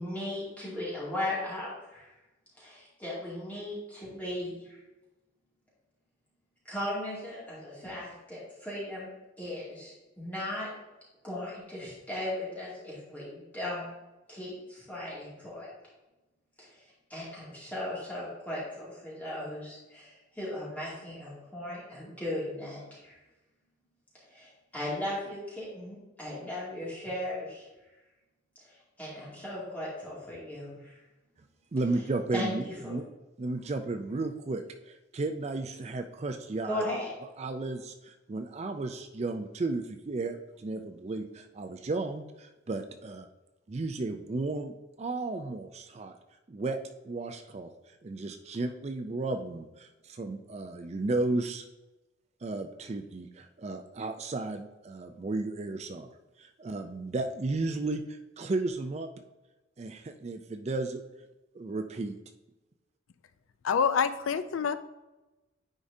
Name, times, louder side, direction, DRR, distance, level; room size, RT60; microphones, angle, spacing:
voice 1, 0.0-2.1 2.6-4.8 6.6-9.1 9.4-10.7 11.2-13.9 14.3-15.7 16.6-16.8 17.1-23.2 24.3-27.7 28.6-31.0 32.3-32.9 36.7-37.1, left 1 dB, 10° left, -8 dB, 2.3 m, -37 dB
voice 2, 31.7-33.1 33.4-36.8 37.4-43.3 43.7-46.1 46.5-46.8 47.0-51.7 52.4-59.1 59.8-61.0 61.5-62.2, right 2 dB, 30° right, 7 dB, 0.4 m, -34 dB
voice 3, 63.6-64.8, left 6 dB, 80° left, 12 dB, 0.4 m, -26 dB
9.9 x 5.0 x 2.7 m, 1.1 s
head